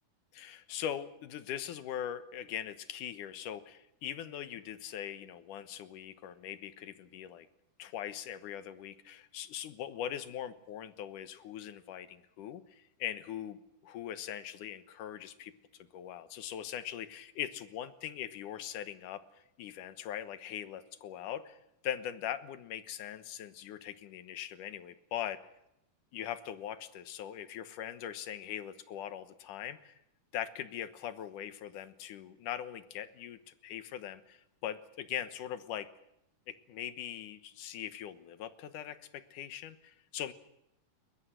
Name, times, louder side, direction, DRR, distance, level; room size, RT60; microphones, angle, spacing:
voice 1, 0.3-7.5 7.8-13.6 13.8-15.5 15.8-19.2 19.6-21.6 21.8-25.4 26.1-29.9 30.3-35.9 36.5-40.3, left 10 dB, 80° left, 12 dB, 2.7 m, -41 dB
21.5 x 20.5 x 7.9 m, 0.83 s
omnidirectional pair, 3.7 m